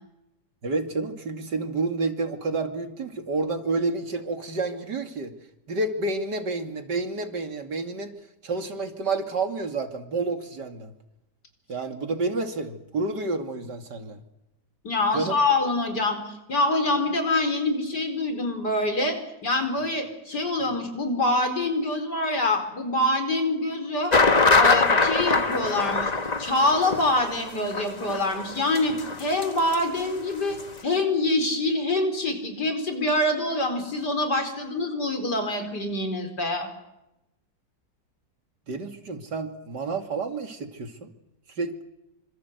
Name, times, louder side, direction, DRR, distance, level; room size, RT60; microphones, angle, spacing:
voice 1, 0.6-5.3 5.7-8.1 8.4-10.9 11.7-14.2 15.1-15.4 38.7-41.1 41.6-41.8, right 3 dB, 85° right, 6 dB, 3.1 m, -29 dB
voice 2, 14.8-24.1 24.6-26.1 26.4-36.7, left 2 dB, 75° left, 6 dB, 5.3 m, -25 dB
sound 1, 24.1-29.7 30.0-30.1 30.5-30.6, left 3 dB, 25° left, 1.3 m, -22 dB
27.5 x 26.0 x 8.2 m, 0.89 s
omnidirectional pair, 1.8 m